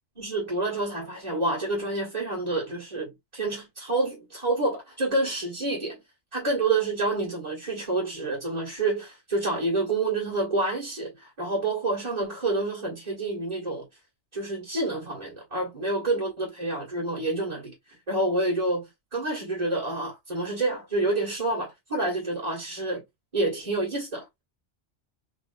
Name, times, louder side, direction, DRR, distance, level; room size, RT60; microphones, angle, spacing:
voice 1, 0.2-6.0 6.3-13.9 14.3-17.7 18.1-23.0 23.3-24.4, right 2 dB, 35° right, 1.9 m, -28 dB
3.9 x 3.2 x 2.6 m
omnidirectional pair, 1.2 m